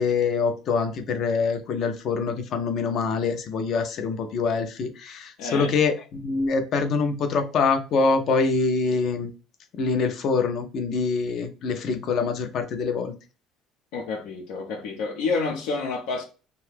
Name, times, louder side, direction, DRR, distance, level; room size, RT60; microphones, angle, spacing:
voice 1, 0.0-9.3 9.8-13.1, left 4 dB, 50° left, 0.5 m, -25 dB
voice 2, 5.4-5.8 13.9-16.2, left 4 dB, 85° left, 0.8 m, -29 dB
2.8 x 2.3 x 3.3 m
cardioid pair, 150°, 0 cm